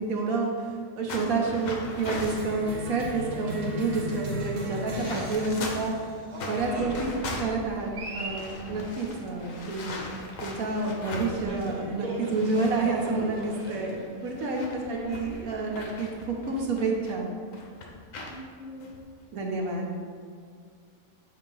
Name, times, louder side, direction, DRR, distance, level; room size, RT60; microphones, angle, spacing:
voice 1, 0.0-5.9 6.5-7.1 7.4-9.9 10.4-17.3 19.3-19.9, right 3 dB, 90° right, -1 dB, 1.4 m, -29 dB
sound 1, 1.1-2.5 3.2-3.3 3.6-6.0 6.3-11.8 12.1-17.1 17.5-18.4 18.8-19.0 19.5-19.8, left 2 dB, 70° left, 1.1 m, -40 dB
Cheering, 2.0-17.2, equal, 55° right, 1.2 m, -39 dB
sound 2, 6.4-15.7 16.1-16.3 17.2-18.0, right 1 dB, 10° right, 1.2 m, -47 dB
voice 2, 14.6-15.4 18.3-18.9, left 2 dB, 25° left, -7 dB, 1.1 m, -40 dB
6.6 x 2.9 x 5.3 m, 2.1 s
omnidirectional pair, 1.5 m